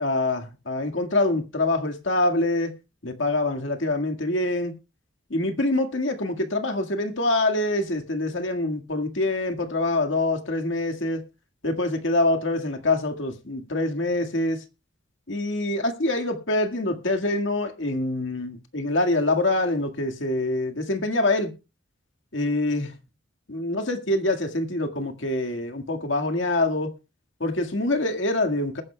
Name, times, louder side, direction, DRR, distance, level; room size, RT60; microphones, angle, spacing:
voice 1, 0.0-2.7 3.0-4.7 5.3-11.2 11.6-14.6 15.3-21.5 22.3-23.0 23.5-26.9 27.4-28.8, left 2 dB, 70° left, 1.8 m, -25 dB
21.0 x 10.5 x 2.2 m
head